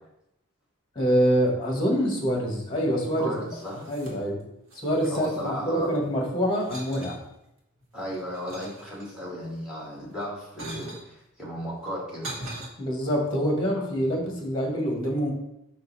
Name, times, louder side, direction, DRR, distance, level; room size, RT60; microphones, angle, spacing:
voice 1, 0.9-3.3 3.9-4.4 4.8-7.2 12.8-15.3, equal, 20° left, 0 dB, 1.6 m, -25 dB
voice 2, 3.2-3.9 5.1-6.0 7.9-12.3, equal, 5° right, -4 dB, 2.1 m, -35 dB
sound 1, 3.4-4.4 4.7-6.1 6.6-7.2 7.8-9.3 10.1-11.1 11.8-12.7, right 1 dB, 65° right, 1.4 m, -41 dB
5.5 x 5.1 x 4.1 m, 0.83 s
head